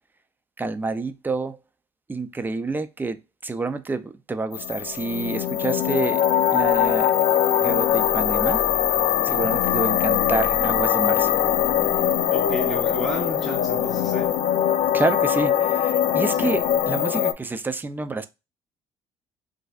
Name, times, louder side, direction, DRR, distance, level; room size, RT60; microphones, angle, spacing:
voice 1, 0.6-1.6 2.1-7.1 7.6-8.6 9.2-11.3 14.9-18.3, right 3 dB, 15° right, 0.4 m, -28 dB
sound 1, 4.5-17.3, left 10 dB, 70° left, 0.4 m, -22 dB
voice 2, 9.3-9.6 12.3-14.4 16.4-16.5, equal, ahead, 1.1 m, -33 dB
4.0 x 2.5 x 2.3 m
cardioid pair, 100°, 13 cm